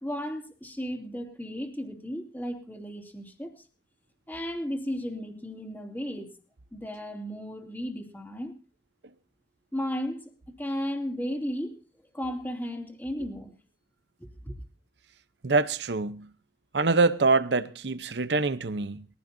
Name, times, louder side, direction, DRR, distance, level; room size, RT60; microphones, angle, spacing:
voice 1, 0.0-3.6 4.3-6.3 6.7-8.6 9.7-10.3 10.6-11.8 12.1-13.5 14.2-14.6, equal, 10° left, 2.7 m, -34 dB
voice 2, 15.4-16.3 16.7-19.0, right 3 dB, 75° right, 0.8 m, -25 dB
21.5 x 15.5 x 2.7 m
head